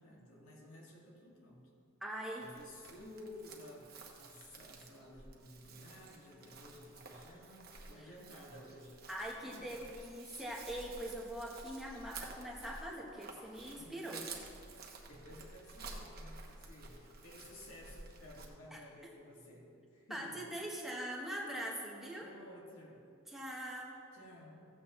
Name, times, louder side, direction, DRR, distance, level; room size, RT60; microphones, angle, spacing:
voice 1, 0.0-1.7 2.4-9.0 9.4-9.9 13.8-14.3 14.8-20.5 22.2-23.0 24.1-24.7, left 1 dB, 90° left, -3 dB, 2.3 m, -54 dB
voice 2, 2.0-2.5 8.0-8.1 9.1-14.3 18.7-18.8 20.1-22.3 23.3-24.0, right 1 dB, ahead, -2 dB, 1.2 m, -42 dB
Chirp tweet, 2.4-18.5, right 4 dB, 45° right, 1.1 m, -52 dB
15.0 x 8.2 x 3.2 m, 2.5 s
head